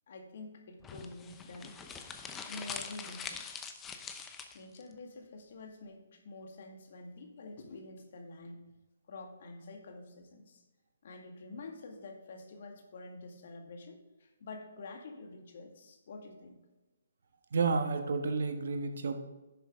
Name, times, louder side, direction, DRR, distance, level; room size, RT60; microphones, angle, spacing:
voice 1, 0.1-1.8 2.5-3.5 4.5-8.6 9.1-10.6 11.0-16.6, left 3 dB, 55° left, 3 dB, 1.9 m, -48 dB
sound 1, 0.8-4.8, left 6 dB, 15° left, 0.7 m, -43 dB
voice 2, 17.5-19.2, right 4 dB, 70° right, 6 dB, 1.3 m, -31 dB
11.0 x 7.1 x 3.7 m, 1.1 s
hypercardioid pair, 150°, 0 cm